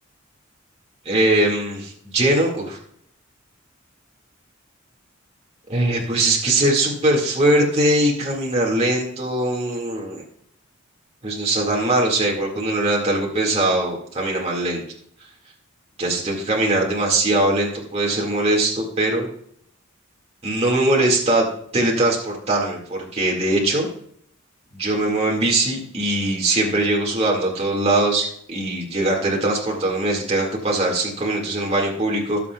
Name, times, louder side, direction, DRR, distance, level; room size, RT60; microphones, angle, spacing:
voice 1, 1.1-2.8 5.7-10.2 11.2-14.8 16.0-19.3 20.4-21.5 21.7-23.9 24.7-32.4, right 1 dB, 30° right, -2 dB, 2.0 m, -21 dB
18.5 x 7.1 x 2.3 m, 0.66 s
head